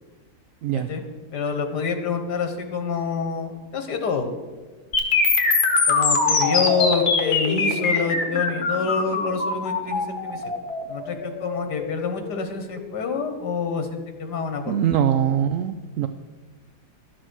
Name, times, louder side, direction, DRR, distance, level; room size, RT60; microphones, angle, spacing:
voice 1, 1.3-4.3 5.9-10.4 10.9-14.7, left 5 dB, 80° left, 6 dB, 1.8 m, -27 dB
sound 1, 4.9-12.9, left 4 dB, 65° left, 2.0 m, -22 dB
voice 2, 14.7-16.1, right 9 dB, 70° right, 9 dB, 0.8 m, -22 dB
12.5 x 7.6 x 6.2 m, 1.3 s
omnidirectional pair, 1.8 m